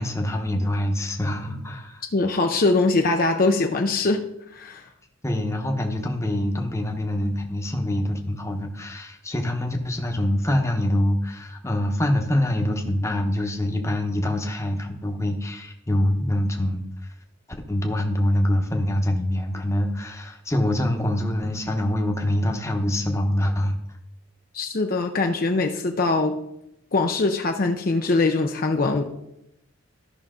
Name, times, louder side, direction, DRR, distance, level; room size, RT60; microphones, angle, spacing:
voice 1, 0.0-2.0 5.2-16.8 17.7-23.8, left 1 dB, 15° left, 3 dB, 0.9 m, -25 dB
voice 2, 2.1-4.2 4.5-4.8 24.5-26.4 26.9-29.0, left 3 dB, 45° left, 4 dB, 0.6 m, -22 dB
13.5 x 5.8 x 3.7 m, 0.83 s
head